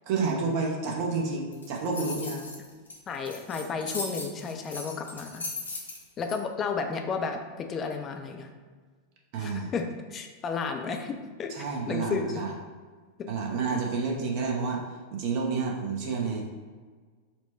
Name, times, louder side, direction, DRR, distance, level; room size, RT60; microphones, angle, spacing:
voice 1, 0.1-2.4 9.3-9.7 11.5-12.5 13.3-14.9 15.1-16.4, right 4 dB, 45° right, -1 dB, 0.7 m, -29 dB
sound 1, 1.5-6.3, left 2 dB, 75° left, 0.8 m, -38 dB
voice 2, 3.1-5.4 6.2-8.5 9.4-12.4 13.2-13.3, left 5 dB, 25° left, 4 dB, 0.5 m, -33 dB
4.4 x 2.2 x 4.2 m, 1.5 s
figure-of-eight pair, 90°, 0 cm